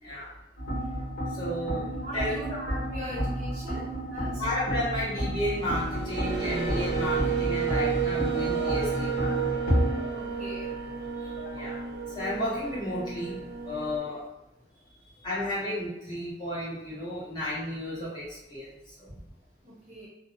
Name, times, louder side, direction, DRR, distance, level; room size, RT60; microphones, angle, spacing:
voice 1, 0.0-0.3 1.3-2.3 3.1-3.2 3.6-3.8 4.4-9.3 11.2-11.8 12.1-13.4 13.7-14.2 15.2-19.1, left 1 dB, 25° left, -10 dB, 1.0 m, -33 dB
sound 1, 0.6-9.9, equal, 45° left, 1.2 m, -31 dB
voice 2, 2.0-4.4 10.1-10.7 14.8-15.2 19.6-20.1, left 1 dB, 40° right, -6 dB, 0.6 m, -41 dB
sound 2, 5.6-14.0, right 6 dB, 70° right, 0.7 m, -32 dB
sound 3, 8.1-13.5, left 7 dB, 80° left, 0.4 m, -48 dB
2.6 x 2.0 x 2.6 m, 0.90 s
head